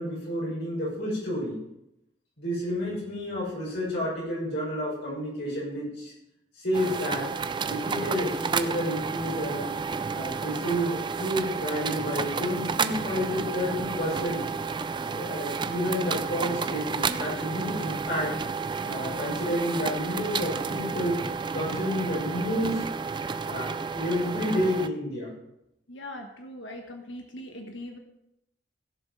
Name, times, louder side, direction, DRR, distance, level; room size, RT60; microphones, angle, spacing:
voice 1, 0.0-1.6 2.4-6.1 6.5-7.3 7.6-9.7 10.1-14.5 15.0-18.4 18.8-21.2 21.5-22.9 23.4-25.3, equal, 65° left, -5 dB, 6.3 m, -30 dB
sound 1, 6.7-24.9, right 5 dB, 25° right, 0.4 m, -31 dB
voice 2, 25.9-28.0, left 1 dB, 85° left, 4 dB, 1.4 m, -40 dB
16.5 x 7.3 x 5.5 m, 0.83 s
head